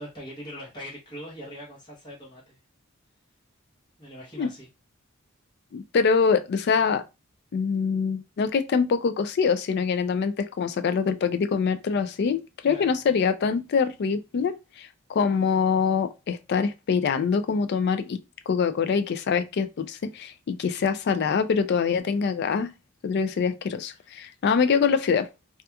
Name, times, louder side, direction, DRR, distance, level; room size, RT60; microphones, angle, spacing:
voice 1, 0.0-2.6 4.0-4.7 12.7-13.0 23.9-24.1, equal, 20° left, 0.9 m, -41 dB
voice 2, 5.7-7.0 7.5-18.2 18.5-22.7 23.0-25.3, left 5 dB, 50° left, 0.3 m, -24 dB
2.8 x 2.3 x 2.2 m
head